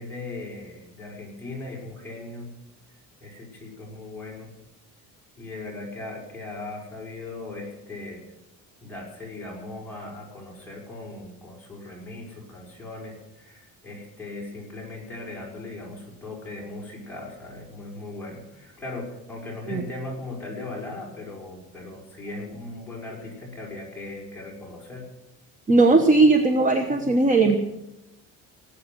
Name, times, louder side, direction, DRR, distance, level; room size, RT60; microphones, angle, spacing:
voice 1, 0.0-2.5 3.2-4.5 5.4-8.2 8.8-25.1, left 2 dB, 5° left, -4 dB, 5.5 m, -38 dB
voice 2, 25.7-27.6, right 3 dB, 20° right, 6 dB, 1.1 m, -18 dB
19.0 x 8.6 x 7.7 m, 0.91 s
cardioid pair, 155°, 35 cm